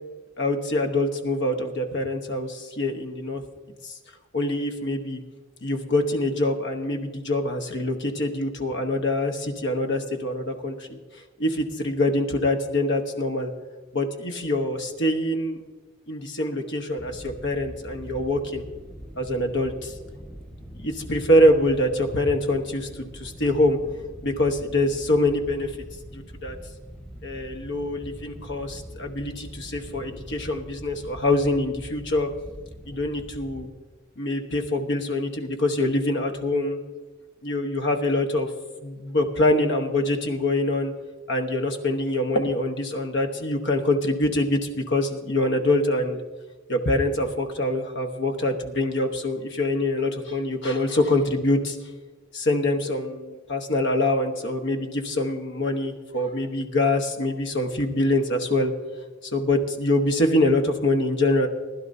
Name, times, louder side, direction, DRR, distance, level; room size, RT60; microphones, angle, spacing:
voice 1, 0.4-3.4 3.8-4.0 4.3-5.2 5.6-11.0 11.4-13.5 13.9-15.6 16.1-18.6 19.2-19.9 20.7-23.8 24.2-25.7 26.1-26.6 27.2-32.3 32.9-33.7 34.2-36.8 37.4-38.5 38.8-40.9 41.3-46.2 46.7-51.8 52.3-58.7 59.2-61.5, left 1 dB, 55° left, 5 dB, 1.1 m, -24 dB
sound 1, 17.0-33.7, equal, 5° left, 1.1 m, -43 dB
19.5 x 11.5 x 2.7 m, 1.3 s
head